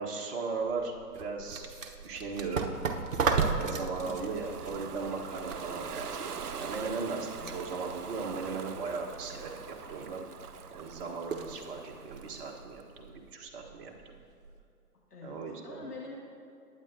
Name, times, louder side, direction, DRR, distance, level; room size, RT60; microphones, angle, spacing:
voice 1, 0.0-1.7 2.0-2.7 3.3-10.2 10.7-13.9 15.2-15.8, right 4 dB, 35° right, 0 dB, 1.5 m, -37 dB
sound 1, 0.6-14.6, right 5 dB, 60° right, 1.0 m, -37 dB
voice 2, 4.0-4.5 7.4-7.6 15.1-16.1, left 3 dB, 80° left, -3 dB, 2.2 m, -46 dB
Ocean, 4.0-12.8, right 6 dB, 85° right, 0.6 m, -43 dB
19.5 x 9.3 x 2.8 m, 2.4 s
figure-of-eight pair, 125°, 45 cm